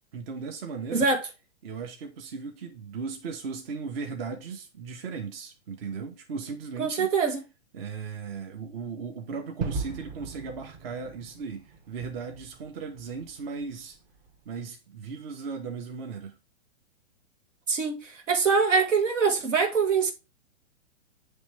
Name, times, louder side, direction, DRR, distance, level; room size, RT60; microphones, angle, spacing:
voice 1, 0.1-1.1 1.6-7.1 7.7-14.0 14.4-16.4, right 5 dB, 50° right, 1.2 m, -37 dB
voice 2, 0.9-1.2 6.8-7.4 17.7-20.1, right 5 dB, 85° right, 1.6 m, -24 dB
Gunshot gunfire / Fireworks / Boom, 9.6-14.4, right 4 dB, 35° right, 1.0 m, -38 dB
9.1 x 3.3 x 3.4 m
hypercardioid pair, 140°, 36 cm